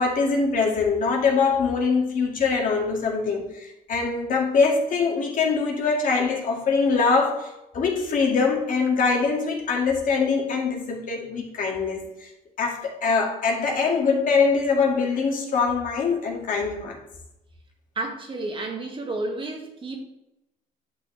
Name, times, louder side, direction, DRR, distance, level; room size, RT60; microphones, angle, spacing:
voice 1, 0.0-12.3 12.6-17.0, left 4 dB, 50° left, 0 dB, 2.3 m, -23 dB
voice 2, 18.0-20.0, right 2 dB, 30° right, 2 dB, 1.9 m, -31 dB
10.5 x 6.6 x 3.4 m, 0.90 s
cardioid pair, 110°, 17 cm